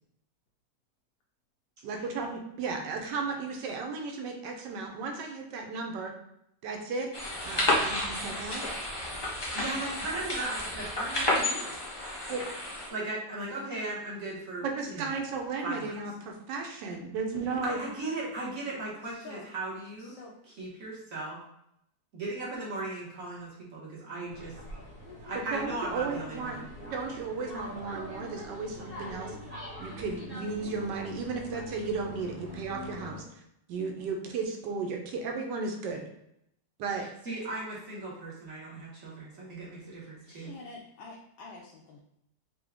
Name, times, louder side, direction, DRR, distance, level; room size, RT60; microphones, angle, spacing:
voice 1, 1.8-6.1 6.6-7.1 7.4-8.6 12.3-12.4 14.6-17.8 25.5-26.6 26.9-29.3 29.8-33.2 33.7-36.0 36.8-37.1, right 4 dB, 80° right, 2 dB, 1.3 m, -34 dB
sound 1, 7.1-12.9, left 1 dB, 30° left, 0.5 m, -31 dB
voice 2, 9.5-11.7 12.9-15.1 15.6-16.0 17.6-20.1 20.5-21.4 22.1-24.5 25.2-26.7 36.9-40.5, right 2 dB, 55° right, -6 dB, 1.4 m, -37 dB
voice 3, 19.0-19.5 20.0-20.4 40.3-42.0, left 3 dB, 85° left, -3 dB, 1.3 m, -47 dB
sound 2, 24.3-33.2, left 1 dB, 25° right, 1.3 m, -44 dB
4.5 x 2.2 x 3.5 m, 0.78 s
omnidirectional pair, 1.9 m